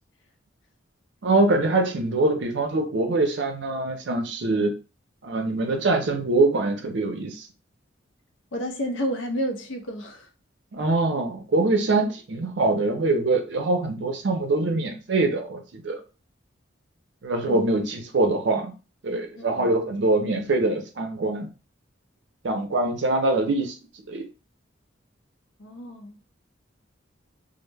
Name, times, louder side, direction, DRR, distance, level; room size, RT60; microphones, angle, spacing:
voice 1, 1.2-4.7 5.2-7.5 10.7-16.0 17.2-18.7 19.0-21.5 22.4-23.7 24.1-24.2, right 2 dB, 65° right, 0.5 m, -23 dB
voice 2, 8.5-10.3 17.5-17.6 19.4-19.7 25.6-26.2, equal, 70° left, 0.5 m, -30 dB
2.1 x 2.0 x 3.2 m
head